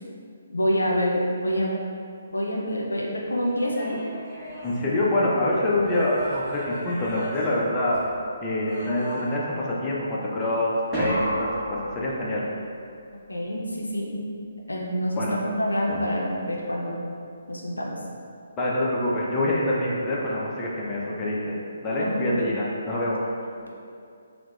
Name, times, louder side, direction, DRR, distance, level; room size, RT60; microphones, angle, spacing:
voice 1, 0.5-1.8 2.3-4.0 4.8-5.1 13.3-14.2 14.7-17.0 17.5-18.0 22.0-22.1 23.6-23.8, equal, 75° left, -2 dB, 0.5 m, -27 dB
sound 1, 3.4-5.3 5.8-8.2 8.6-9.6 10.9-12.5 15.9-16.5, right 1 dB, 5° right, 1.1 m, -34 dB
voice 2, 4.6-8.0 8.4-12.5 15.2-15.4 18.6-21.6 21.8-23.2, left 1 dB, 15° left, -6 dB, 0.4 m, -25 dB
4.5 x 2.1 x 2.2 m, 2.4 s
figure-of-eight pair, 140°, 0 cm